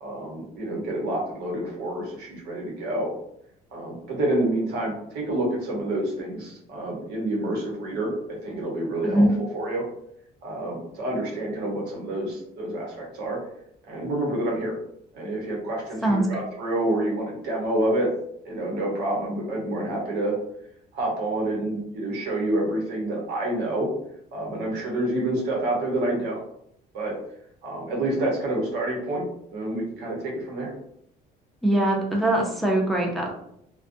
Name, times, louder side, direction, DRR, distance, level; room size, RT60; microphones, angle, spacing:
voice 1, 0.0-3.1 3.7-9.2 9.5-9.8 10.4-13.4 13.9-14.8 15.1-18.1 18.4-20.3 20.9-23.9 24.3-26.4 26.9-27.1 27.6-30.7, right 1 dB, 90° right, -2 dB, 0.9 m, -28 dB
voice 2, 31.6-33.3, right 1 dB, ahead, -2 dB, 0.5 m, -22 dB
2.3 x 2.2 x 2.5 m, 0.73 s
cardioid pair, 110°, 17 cm